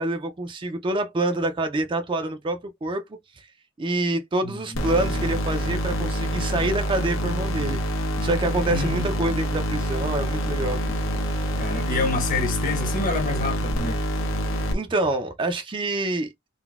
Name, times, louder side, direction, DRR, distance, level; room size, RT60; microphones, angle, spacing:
voice 1, 0.0-3.0 3.4-3.5 3.8-10.8 14.7-16.3, right 2 dB, 25° right, 0.4 m, -26 dB
voice 2, 4.4-5.3 8.7-9.1 11.6-14.0, left 3 dB, 45° left, 0.9 m, -28 dB
sound 1, 4.7-14.7, equal, 85° left, 0.8 m, -26 dB
3.8 x 2.1 x 2.3 m
head